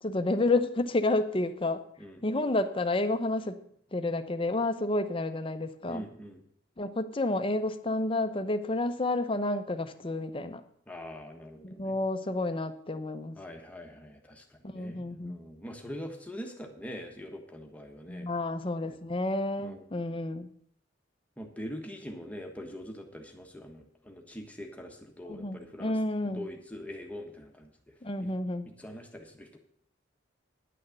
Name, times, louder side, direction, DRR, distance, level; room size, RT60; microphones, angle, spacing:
voice 1, 0.0-1.8 2.2-3.6 3.9-6.0 6.8-10.6 11.6-13.4 14.6-15.4 18.1-20.5 25.3-26.5 28.0-28.7, left 2 dB, 30° left, 9 dB, 0.7 m, -30 dB
voice 2, 5.9-6.4 10.9-12.0 13.4-18.3 19.6-19.8 21.4-26.0 26.2-27.9 28.2-28.3 28.6-29.6, equal, 10° left, 3 dB, 1.3 m, -43 dB
10.0 x 6.4 x 7.7 m, 0.65 s
head